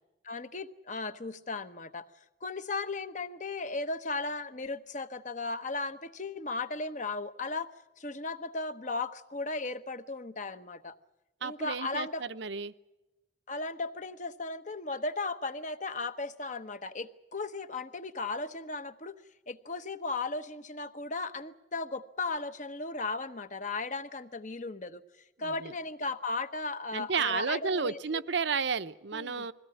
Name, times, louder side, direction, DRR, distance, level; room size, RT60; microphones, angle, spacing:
voice 1, 0.2-2.1 2.4-7.7 8.0-10.9 11.4-12.2 13.5-19.2 19.5-25.0 25.4-28.0 29.1-29.5, left 3 dB, 40° left, 11 dB, 1.0 m, -36 dB
voice 2, 11.4-12.7 25.4-25.7 26.9-29.5, right 5 dB, 65° right, 13 dB, 0.7 m, -32 dB
22.0 x 16.5 x 9.5 m, 1.0 s
head